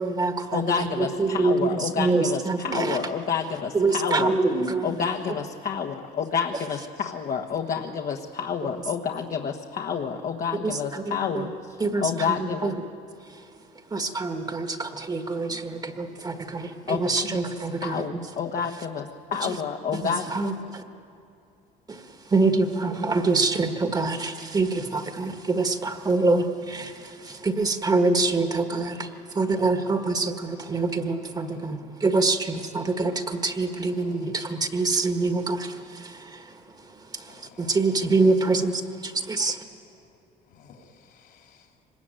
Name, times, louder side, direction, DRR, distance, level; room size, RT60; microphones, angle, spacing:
voice 1, 0.0-3.0 3.7-5.0 8.6-8.7 10.5-11.5 11.8-12.7 13.3-13.4 13.9-18.2 19.4-19.6 20.0-20.8 21.9-39.6, right 3 dB, 25° right, 6 dB, 1.6 m, -26 dB
voice 2, 0.5-4.3 4.8-11.5 12.0-12.7 16.9-17.0 17.3-17.4 17.8-20.2, left 6 dB, 50° left, 2 dB, 1.4 m, -29 dB
voice 3, 15.4-16.7 26.8-27.5 34.0-34.2 37.2-37.8 40.5-41.7, left 6 dB, 65° left, 2 dB, 3.8 m, -55 dB
24.5 x 20.5 x 9.1 m, 2.6 s
cardioid pair, 115°, 17 cm